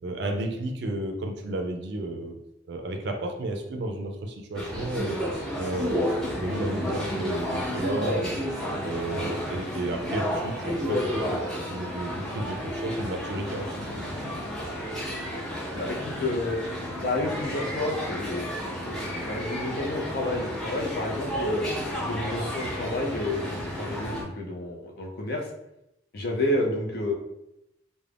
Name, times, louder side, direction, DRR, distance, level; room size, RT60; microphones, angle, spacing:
voice 1, 0.0-2.4 2.7-5.2 5.6-8.4 8.8-11.4 11.7-13.7, right 1 dB, 55° right, 3 dB, 0.4 m, -32 dB
sound 1, 4.5-24.2, equal, 5° left, 0.5 m, -31 dB
voice 2, 15.7-16.6 17.0-21.6 22.0-25.4 26.1-27.1, left 1 dB, 50° left, 0 dB, 0.5 m, -30 dB
2.4 x 2.1 x 3.3 m, 0.85 s
head